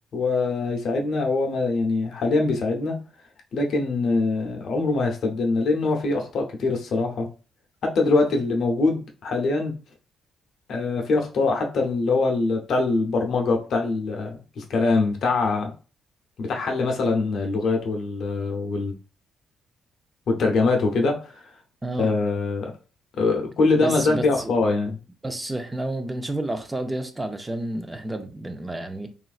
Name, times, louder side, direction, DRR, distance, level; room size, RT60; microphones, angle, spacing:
voice 1, 0.1-3.0 3.5-7.3 7.8-9.8 10.7-15.7 16.4-18.9 20.3-21.4 22.0-22.7 23.2-25.0, left 3 dB, 65° left, 0.7 m, -23 dB
voice 2, 21.8-22.1 23.8-24.5 25.2-29.1, right 1 dB, 15° right, 0.5 m, -30 dB
3.0 x 2.5 x 2.4 m
cardioid pair, 90°, 0 cm